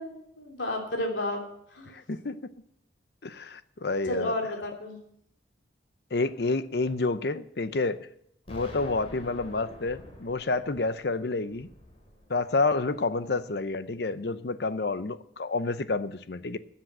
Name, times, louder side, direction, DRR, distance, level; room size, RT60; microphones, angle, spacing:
voice 1, 0.0-1.4 1.7-1.9 4.0-5.0 13.2-13.3, left 1 dB, 80° left, 1 dB, 3.2 m, -32 dB
voice 2, 1.9-2.5 3.2-4.3 6.1-8.1 8.5-11.7 12.3-16.6, left 3 dB, 60° left, 13 dB, 0.6 m, -29 dB
Explosion, 8.5-13.3, left 1 dB, 30° left, 3.1 m, -47 dB
13.5 x 7.4 x 7.7 m, 0.74 s
head